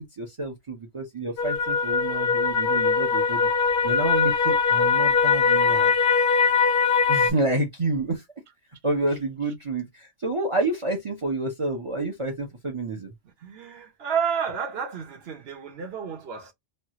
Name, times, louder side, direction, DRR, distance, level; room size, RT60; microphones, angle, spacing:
voice 1, 0.2-3.4 3.8-5.9 7.1-8.2 8.8-13.1, right 2 dB, 35° right, 0.6 m, -29 dB
sound 1, 1.4-7.3, left 5 dB, 60° left, 0.8 m, -21 dB
voice 2, 13.4-16.5, right 7 dB, 60° right, 1.0 m, -30 dB
3.2 x 2.4 x 2.8 m
omnidirectional pair, 1.2 m